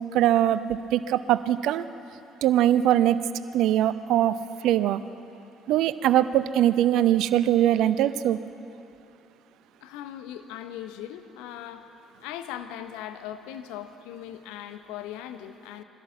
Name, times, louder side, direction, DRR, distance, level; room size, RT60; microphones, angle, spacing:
voice 1, 0.0-1.8 2.4-3.2 3.5-4.4 4.6-5.0 5.7-8.4, right 12 dB, 60° right, 14 dB, 0.6 m, -22 dB
voice 2, 9.8-11.9 12.2-15.8, left 11 dB, 65° left, 9 dB, 0.9 m, -39 dB
22.5 x 16.0 x 7.3 m, 2.8 s
figure-of-eight pair, 45°, 0 cm